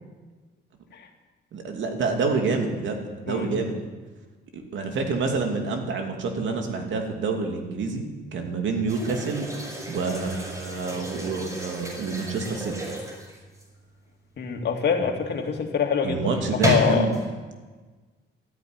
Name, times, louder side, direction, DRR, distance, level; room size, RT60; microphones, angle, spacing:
voice 1, 1.5-3.7 4.5-8.0 8.3-9.5 9.9-12.7 16.0-17.1, right 4 dB, 70° right, 3 dB, 2.7 m, -27 dB
sound 1, 8.9-13.8 16.3-17.3, equal, 15° right, 5.4 m, -32 dB
voice 2, 14.4-16.3 16.6-17.1, left 6 dB, 60° left, 3 dB, 2.5 m, -24 dB
13.5 x 9.3 x 9.7 m, 1.3 s
cardioid pair, 90°, 20 cm